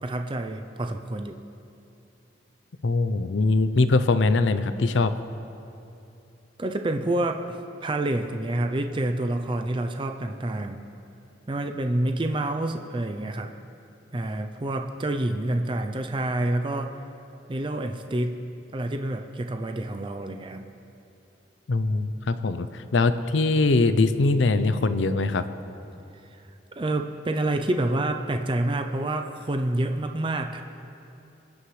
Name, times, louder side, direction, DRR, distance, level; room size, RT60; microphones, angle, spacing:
voice 1, 0.0-1.4 6.6-10.9 11.5-13.5 14.1-16.9 17.5-18.4 18.7-20.6 26.8-30.6, right 1 dB, 25° right, 5 dB, 0.5 m, -28 dB
voice 2, 2.8-5.1 21.7-25.4, left 3 dB, 85° left, 12 dB, 0.6 m, -22 dB
23.0 x 9.7 x 3.2 m, 2.8 s
head